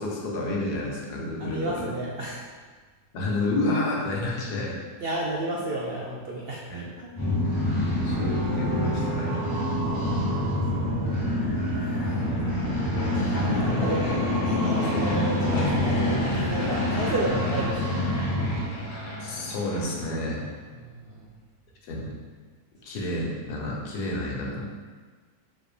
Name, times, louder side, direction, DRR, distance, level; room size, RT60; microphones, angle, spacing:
voice 1, 0.0-1.9 3.1-4.8 6.7-6.8 7.9-9.4 19.2-20.4 21.8-22.2 22.8-24.7, left 2 dB, 70° left, -2 dB, 1.6 m, -30 dB
voice 2, 1.4-2.5 5.0-7.2 10.0-11.3 11.8-12.0 13.1-18.4 20.8-21.3, right 1 dB, 70° right, -3 dB, 0.5 m, -33 dB
sound 1, 7.2-18.6, left 1 dB, 15° left, 1.3 m, -26 dB
Fixed-wing aircraft airplane, 9.5-20.6, left 2 dB, 30° left, 1.2 m, -33 dB
6.0 x 4.9 x 3.4 m, 1.5 s
omnidirectional pair, 1.9 m